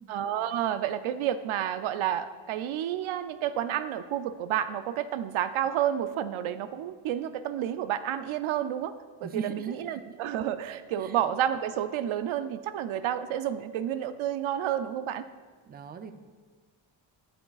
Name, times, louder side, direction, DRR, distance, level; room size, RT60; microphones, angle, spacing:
voice 1, 0.1-8.9 9.2-15.3, right 10 dB, 85° right, 11 dB, 0.6 m, -30 dB
voice 2, 9.2-9.8 11.0-11.1 15.7-16.1, right 5 dB, 20° right, 9 dB, 0.4 m, -38 dB
12.5 x 6.9 x 2.4 m, 1.4 s
cardioid pair, 100°, 47 cm